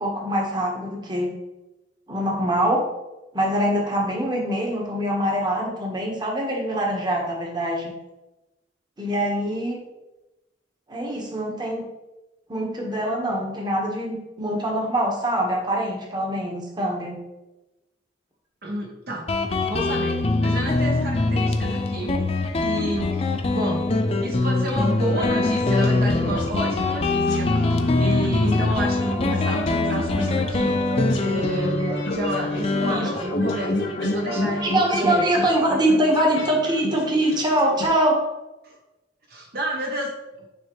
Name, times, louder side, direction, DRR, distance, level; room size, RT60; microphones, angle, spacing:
voice 1, 0.0-1.3 2.1-2.8 3.3-7.9 9.0-9.8 10.9-11.8 12.5-17.2 31.8-31.9 32.8-33.3 34.6-38.2, right 1 dB, 25° right, -1 dB, 1.1 m, -24 dB
voice 2, 18.6-19.3 19.7-23.9 24.2-30.8 31.2-31.8 32.1-34.7 35.0-35.5 38.6-38.8 39.3-40.5, right 1 dB, 55° right, 0 dB, 0.9 m, -30 dB
Guitar, 19.3-36.5, left 2 dB, 35° left, 0.5 m, -23 dB
sound 1, 25.1-37.8, left 1 dB, 85° left, 1.6 m, -34 dB
9.2 x 3.3 x 3.0 m, 1.0 s
head